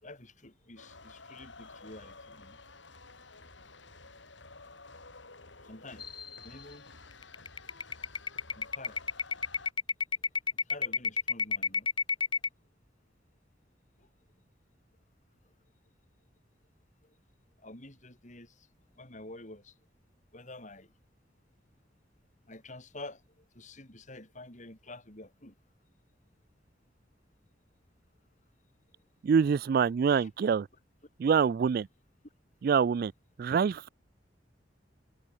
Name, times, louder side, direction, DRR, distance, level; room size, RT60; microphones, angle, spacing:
voice 1, 0.0-2.6 5.6-6.1 6.4-6.9 8.5-9.0 10.7-11.9 14.0-14.1 17.6-18.7 19.0-19.7 20.3-20.9 22.5-23.2 23.5-25.5 30.1-30.3, left 2 dB, 40° left, 5.2 m, -48 dB
sound 1, 0.8-9.7, left 3 dB, 85° left, 7.0 m, -52 dB
sound 2, 6.0-6.5 6.7-6.8 7.2-12.5, left 5 dB, 25° left, 0.9 m, -29 dB
voice 2, 29.2-30.7 31.2-31.9 32.6-33.1 33.4-33.9, right 6 dB, 55° right, 0.3 m, -25 dB
head